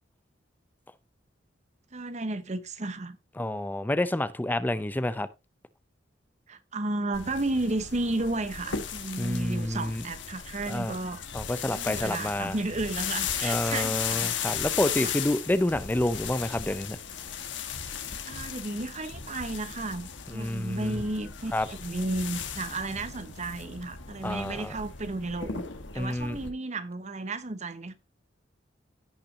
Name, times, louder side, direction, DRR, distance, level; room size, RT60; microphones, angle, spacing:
voice 1, 1.9-3.2 6.5-11.2 11.7-14.3 15.0-15.1 18.3-25.6 25.9-27.9, right 2 dB, 40° right, 1.0 m, -33 dB
voice 2, 3.4-5.3 9.2-10.0 10.7-10.9 11.3-12.5 13.4-17.0 20.3-20.9 21.5-21.7 24.2-24.7 26.0-26.4, left 1 dB, 10° left, 0.5 m, -28 dB
sound 1, 7.1-26.5, left 7 dB, 80° left, 1.4 m, -36 dB
16.5 x 5.9 x 2.7 m
head